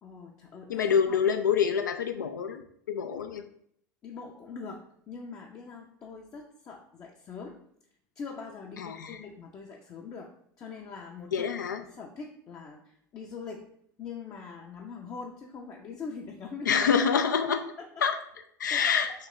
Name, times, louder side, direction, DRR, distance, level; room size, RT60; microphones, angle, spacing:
voice 1, 0.0-1.2 4.0-7.6 8.2-11.5 11.8-13.7 14.0-16.8 17.8-17.9 18.7-19.1, left 5 dB, 35° left, 0 dB, 0.5 m, -43 dB
voice 2, 0.7-2.6 2.9-3.4 8.8-9.2 11.3-11.8 16.7-17.6 18.0-18.2 18.6-19.1, left 7 dB, 80° left, 7 dB, 0.4 m, -26 dB
3.2 x 3.0 x 3.8 m, 0.66 s
figure-of-eight pair, 75°, 10 cm